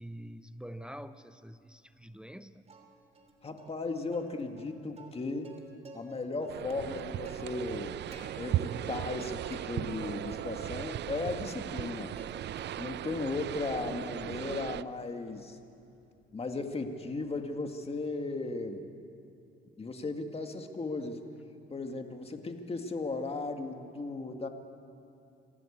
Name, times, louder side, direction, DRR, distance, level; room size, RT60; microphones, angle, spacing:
voice 1, 0.0-2.6, equal, 5° right, 11 dB, 0.8 m, -46 dB
Plucked string instrument, 2.7-3.3 3.6-3.7 4.1-6.1 6.4-8.3 8.7-9.2 9.5-10.5 10.9-12.3 12.6-13.1 13.5-17.7, right 3 dB, 30° right, 3.7 m, -54 dB
voice 2, 3.4-5.6 5.9-8.0 8.4-12.1 12.8-15.6 16.3-18.8 19.8-21.2 21.7-24.5, left 3 dB, 30° left, 5 dB, 2.0 m, -36 dB
sound 1, 6.5-14.8, right 12 dB, 60° right, 0.5 m, -37 dB
26.0 x 17.0 x 8.7 m, 2.7 s
cardioid pair, 90°, 20 cm